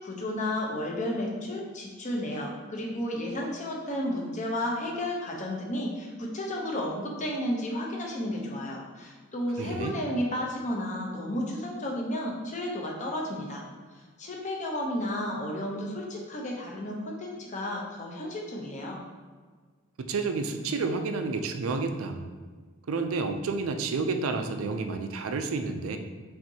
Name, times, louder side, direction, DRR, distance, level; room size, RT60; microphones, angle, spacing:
voice 1, 0.0-13.6 14.2-19.0, left 1 dB, 35° left, -1 dB, 0.7 m, -32 dB
voice 2, 9.6-10.0 20.0-22.3 22.9-26.0, right 4 dB, 85° right, 6 dB, 0.4 m, -30 dB
5.7 x 2.6 x 2.8 m, 1.5 s
head